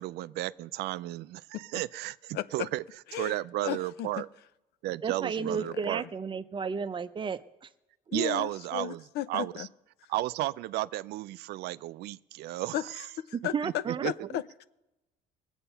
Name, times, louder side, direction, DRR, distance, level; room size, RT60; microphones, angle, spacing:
voice 1, 0.0-2.8 3.1-4.3 4.8-6.0 8.1-9.7 10.1-12.9 13.6-14.3, right 16 dB, 75° right, 0.4 m, -33 dB
voice 2, 2.3-2.7 3.1-3.3 3.6-4.2 5.4-5.7 8.1-9.7 12.7-14.7, left 12 dB, 75° left, 0.6 m, -35 dB
voice 3, 5.0-7.7 13.5-14.4, right 6 dB, 30° right, 0.6 m, -33 dB
20.0 x 8.0 x 5.6 m
cardioid pair, 110°, 17 cm